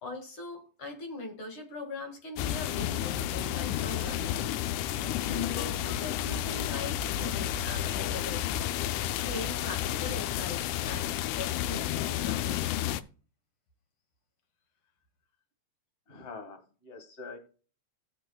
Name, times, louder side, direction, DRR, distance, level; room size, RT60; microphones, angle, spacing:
voice 1, 0.0-4.4 5.0-8.6 9.1-12.6, left 3 dB, 50° left, 3 dB, 2.4 m, -41 dB
sound 1, 2.4-13.0, left 11 dB, 85° left, 2.0 m, -31 dB
voice 2, 16.1-17.4, left 4 dB, 30° left, 4 dB, 1.5 m, -45 dB
17.5 x 6.7 x 2.3 m, 0.37 s
omnidirectional pair, 3.4 m